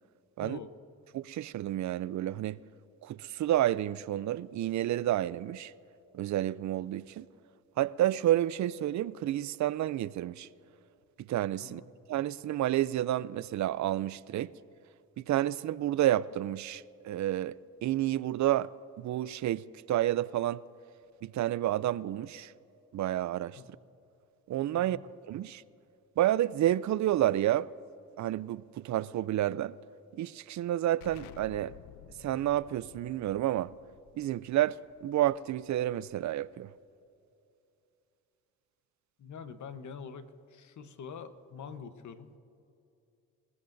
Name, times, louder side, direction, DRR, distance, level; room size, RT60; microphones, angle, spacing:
voice 1, 0.4-0.7 11.6-11.9 23.6-23.7 24.8-25.0 39.2-42.3, left 6 dB, 60° left, 1.1 m, -45 dB
voice 2, 1.1-2.6 3.0-5.7 6.1-7.3 7.8-10.5 11.2-11.8 12.1-14.5 15.2-18.7 19.0-20.6 21.2-22.5 22.9-23.6 24.5-25.0 25.3-25.6 26.2-27.7 28.2-29.7 30.1-31.7 32.2-33.7 34.1-36.7, right 13 dB, 60° right, 0.5 m, -30 dB
Explosion, 31.0-36.4, left 12 dB, 90° left, 0.5 m, -54 dB
25.0 x 15.0 x 2.6 m
supercardioid pair, 65°, 33 cm